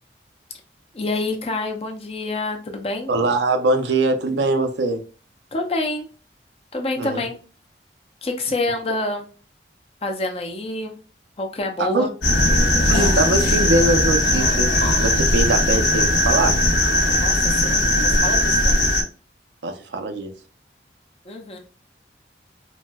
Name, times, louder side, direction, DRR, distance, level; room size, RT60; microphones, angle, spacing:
voice 1, 0.9-3.1 5.5-6.1 6.7-7.4 8.2-9.3 10.0-11.0 11.4-12.1 17.2-18.8 21.3-21.6, left 2 dB, 35° left, 0.5 m, -27 dB
voice 2, 3.1-5.0 7.0-7.2 11.8-12.1 12.9-16.9 19.6-20.3, right 2 dB, 80° right, 0.5 m, -22 dB
sound 1, 12.2-19.0, left 1 dB, 80° left, 1.0 m, -18 dB
4.1 x 2.1 x 2.2 m
head